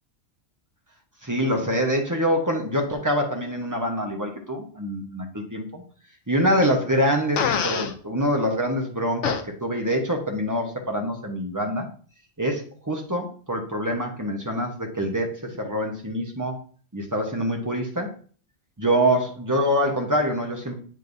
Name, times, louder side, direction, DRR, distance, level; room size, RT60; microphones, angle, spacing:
voice 1, 1.2-5.8 6.3-11.9 12.4-16.6 16.9-18.1 18.8-20.8, equal, 15° right, 2 dB, 1.0 m, -25 dB
Fart, 7.4-7.9 9.2-9.4, left 7 dB, 85° left, 1.0 m, -24 dB
7.6 x 5.3 x 2.7 m, 0.43 s
omnidirectional pair, 1.2 m